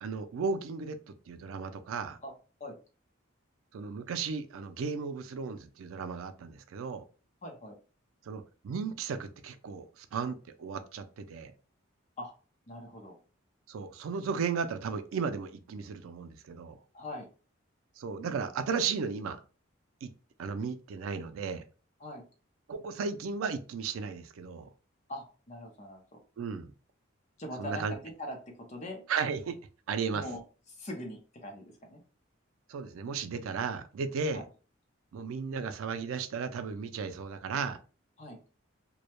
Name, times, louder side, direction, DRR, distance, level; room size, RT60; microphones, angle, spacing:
voice 1, 0.0-2.2 3.7-7.0 8.3-11.5 13.7-16.8 18.0-19.4 20.0-20.1 20.4-21.6 22.7-24.7 26.4-26.7 27.6-27.9 29.1-29.6 29.9-30.2 32.7-34.4 35.1-37.8, right 5 dB, 90° right, 10 dB, 0.4 m, -35 dB
voice 2, 7.4-7.8 12.2-12.3 12.7-13.2 16.9-17.3 22.0-22.2 25.1-26.2 27.4-29.0 30.1-30.4 30.7-32.0 34.3-34.4 38.2-38.4, left 1 dB, 35° left, 2 dB, 0.6 m, -42 dB
2.2 x 2.0 x 2.9 m, 0.35 s
head